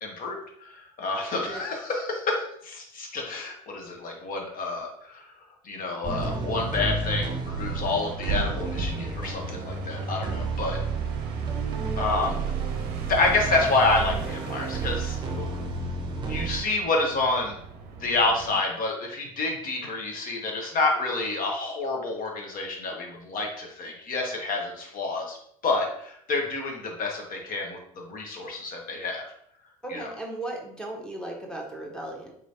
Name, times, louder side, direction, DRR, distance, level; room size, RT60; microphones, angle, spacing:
voice 1, 0.0-5.2 5.6-10.8 12.0-12.4 13.1-15.6 16.2-17.6 18.0-25.4 25.6-29.2 29.9-30.1, left 3 dB, 50° left, 1 dB, 1.2 m, -28 dB
sound 1, 6.0-16.6, right 4 dB, 25° right, 0.7 m, -31 dB
sound 2, 6.0-18.6, right 6 dB, 60° right, 0.6 m, -38 dB
voice 2, 29.8-32.3, right 2 dB, 5° left, -1 dB, 1.0 m, -36 dB
3.9 x 3.1 x 2.8 m, 0.69 s
hypercardioid pair, 70°, 19 cm